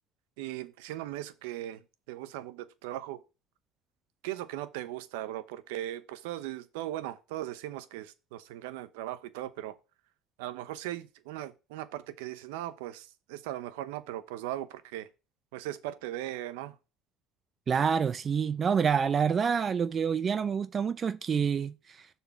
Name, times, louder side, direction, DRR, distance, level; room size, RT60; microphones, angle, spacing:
voice 1, 0.4-1.8 2.1-3.2 4.2-9.8 10.4-15.1 15.5-16.7, right 14 dB, 85° right, 0.8 m, -38 dB
voice 2, 17.7-22.0, right 6 dB, 35° right, 0.5 m, -27 dB
6.8 x 4.4 x 5.8 m
supercardioid pair, 100°, 0 cm